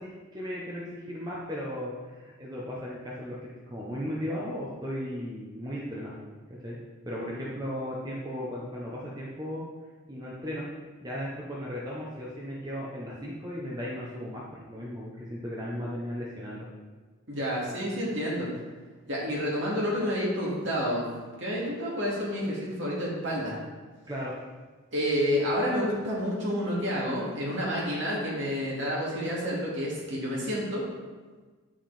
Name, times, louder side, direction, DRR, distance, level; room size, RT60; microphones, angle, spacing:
voice 1, 0.0-3.4 3.7-6.2 6.6-6.8 7.1-9.7 10.1-10.7 11.0-16.7 24.1-24.4, equal, 20° right, -5 dB, 1.0 m, -36 dB
voice 2, 17.3-18.5 19.0-21.1 21.4-23.6 24.9-30.8, equal, 55° right, -5 dB, 2.7 m, -29 dB
9.3 x 6.1 x 4.3 m, 1.4 s
head